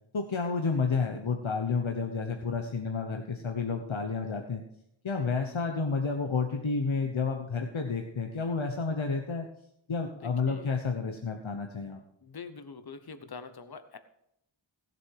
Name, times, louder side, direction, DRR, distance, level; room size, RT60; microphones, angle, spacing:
voice 1, 0.1-4.6 5.0-9.4 9.9-12.0, left 4 dB, 75° left, 4 dB, 1.2 m, -30 dB
voice 2, 10.1-10.8 12.2-14.0, left 5 dB, 50° left, 10 dB, 1.0 m, -45 dB
16.5 x 7.6 x 4.7 m, 0.77 s
wide cardioid pair, 50°, 47 cm